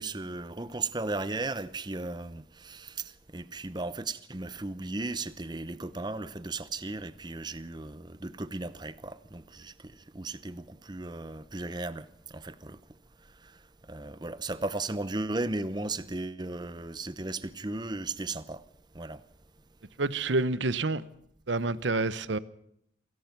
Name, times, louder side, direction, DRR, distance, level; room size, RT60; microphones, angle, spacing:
voice 1, 0.0-12.0 12.3-12.8 13.9-18.6 18.9-19.2, right 2 dB, 25° right, 0.8 m, -36 dB
voice 2, 20.0-21.0 21.5-22.4, right 3 dB, 80° right, 1.0 m, -28 dB
28.0 x 17.5 x 6.0 m
head